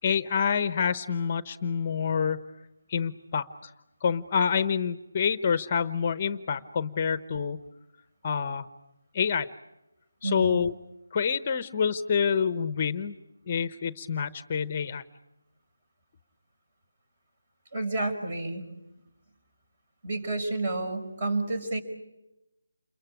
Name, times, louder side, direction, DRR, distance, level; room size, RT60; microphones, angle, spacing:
voice 1, 0.0-2.4 2.9-3.7 4.0-7.6 8.2-8.7 9.1-9.5 10.2-10.7 11.1-13.2 13.5-15.0, left 6 dB, 25° left, 12 dB, 0.9 m, -27 dB
voice 2, 10.2-10.6 17.7-18.7 20.0-21.8, right 2 dB, 35° right, 6 dB, 5.4 m, -30 dB
28.5 x 23.0 x 8.5 m, 0.95 s
figure-of-eight pair, 165°, 0 cm